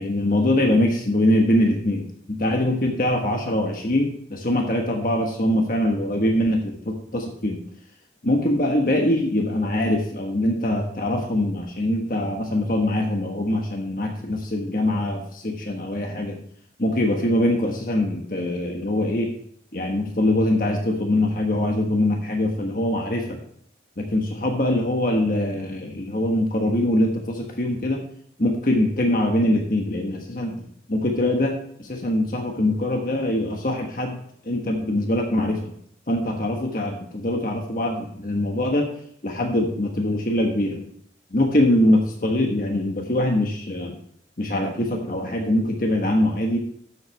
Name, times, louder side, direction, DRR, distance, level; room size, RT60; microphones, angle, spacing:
voice 1, 0.0-7.6 8.2-16.4 16.8-19.3 19.7-23.4 24.0-28.1 28.4-35.7 36.1-40.9 41.3-44.0 44.4-46.6, left 1 dB, 50° left, 2 dB, 1.3 m, -23 dB
12.5 x 7.8 x 3.4 m, 0.64 s
head